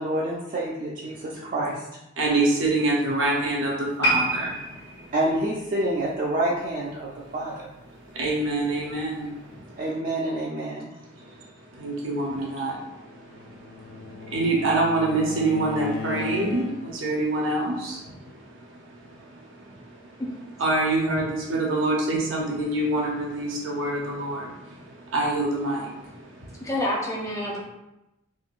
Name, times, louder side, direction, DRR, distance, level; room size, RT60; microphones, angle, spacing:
voice 1, 0.0-1.8 5.1-7.7 9.8-10.9, right 1 dB, 40° right, -5 dB, 0.3 m, -27 dB
voice 2, 1.1-1.5 2.2-5.1 7.1-7.3 7.9-9.9 11.0-20.2 20.6-26.7, right 2 dB, 85° right, -2 dB, 0.7 m, -27 dB
sound 1, 4.0-7.3 7.6-7.9 8.5-8.6, right 1 dB, 60° left, 1.1 m, -30 dB
Bowed string instrument, 13.1-17.1, left 5 dB, 75° left, 0.4 m, -37 dB
voice 3, 26.6-27.6, left 1 dB, 15° left, -3 dB, 0.6 m, -28 dB
3.6 x 2.2 x 2.4 m, 0.94 s
head